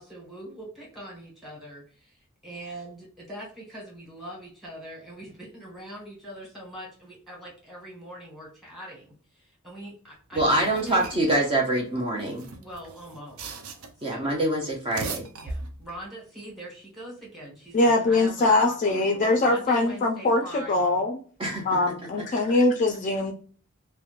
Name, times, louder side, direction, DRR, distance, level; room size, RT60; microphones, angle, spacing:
voice 1, 0.0-11.4 12.6-13.5 14.0-14.3 15.4-21.0, right 1 dB, ahead, -2 dB, 1.3 m, -42 dB
sound 1, 10.3-11.4 12.2-14.1 14.7-16.1, right 3 dB, 75° right, 0.5 m, -38 dB
voice 2, 10.4-12.4 14.0-15.3 21.4-21.6, right 1 dB, 25° right, -2 dB, 0.5 m, -25 dB
voice 3, 17.7-21.2 21.7-23.3, left 2 dB, 35° left, 4 dB, 0.4 m, -22 dB
2.9 x 2.1 x 2.4 m, 0.42 s
head